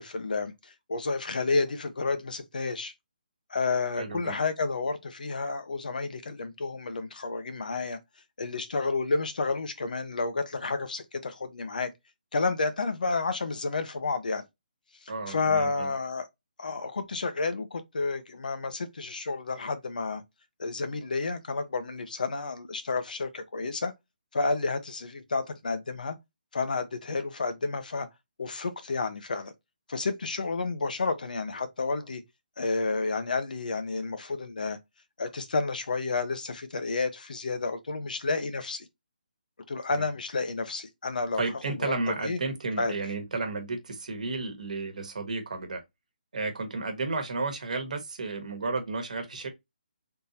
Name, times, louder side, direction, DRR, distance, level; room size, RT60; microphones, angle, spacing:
voice 1, 0.0-2.9 3.5-8.0 8.4-11.9 12.3-14.4 15.0-16.3 16.6-20.2 20.6-23.9 24.3-26.2 26.5-28.1 28.4-29.5 29.9-32.2 32.6-34.8 35.2-38.9 39.7-41.4 41.8-41.9 42.2-42.4 42.8-43.0, left 3 dB, 60° left, 0.7 m, -30 dB
voice 2, 4.0-4.4 15.1-15.9 39.9-40.1 41.4-45.8 46.3-49.5, right 3 dB, 55° right, 1.2 m, -32 dB
3.7 x 2.6 x 2.7 m
hypercardioid pair, 175°, 5 cm